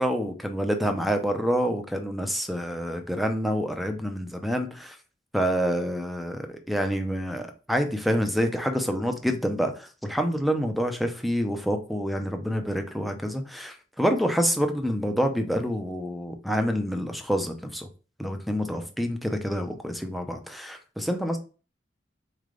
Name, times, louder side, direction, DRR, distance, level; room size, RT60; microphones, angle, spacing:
voice 1, 0.0-5.0 5.3-17.9 18.2-21.4, equal, ahead, 5 dB, 0.6 m, -27 dB
4.2 x 3.3 x 3.8 m, 0.34 s
head